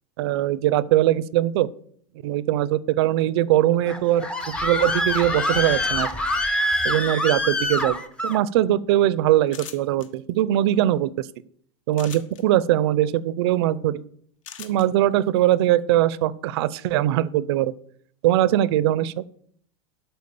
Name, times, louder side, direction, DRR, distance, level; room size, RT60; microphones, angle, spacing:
voice 1, 0.2-1.7 2.2-4.3 4.6-6.1 6.8-11.3 11.9-14.0 14.6-17.7 18.2-19.2, right 13 dB, 50° right, 19 dB, 0.5 m, -21 dB
Screaming, 3.9-8.4, left 1 dB, 5° left, 0.4 m, -25 dB
sound 1, 9.5-10.1 11.9-12.4 14.4-14.9, left 9 dB, 75° left, 1.4 m, -39 dB
12.0 x 4.5 x 6.9 m, 0.62 s
supercardioid pair, 180°, 17 cm